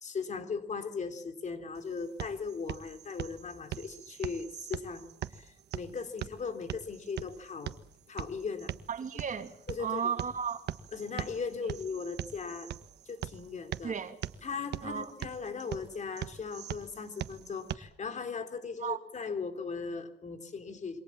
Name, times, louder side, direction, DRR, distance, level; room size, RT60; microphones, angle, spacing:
voice 1, 0.0-7.7 8.1-8.7 9.7-10.0 10.9-12.7 13.1-14.0 14.4-21.0, left 5 dB, 45° left, 9 dB, 3.7 m, -38 dB
sound 1, 1.7-17.7, right 11 dB, 80° right, 1.5 m, -42 dB
voice 2, 8.9-9.5 9.8-10.6 13.8-14.2 14.8-15.1 18.8-19.0, right 7 dB, 50° right, 8 dB, 2.6 m, -34 dB
27.5 x 25.0 x 7.4 m, 0.69 s
cardioid pair, 110°, 17 cm